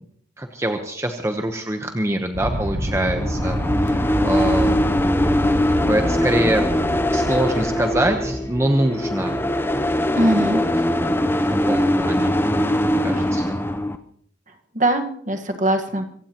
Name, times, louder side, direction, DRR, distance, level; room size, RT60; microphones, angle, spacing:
voice 1, 0.4-4.9 5.8-6.7 7.1-9.4 10.2-10.6 11.0-11.3 11.7-12.7 13.0-13.6, right 1 dB, 15° right, 4 dB, 0.9 m, -24 dB
Aircraft, 2.3-8.7, equal, 65° right, 1.7 m, -28 dB
sound 1, 2.9-14.0, left 1 dB, 10° left, 0.7 m, -21 dB
voice 2, 10.2-10.6 14.7-16.2, right 1 dB, 40° right, 5 dB, 1.5 m, -21 dB
25.5 x 16.0 x 3.0 m, 0.67 s
head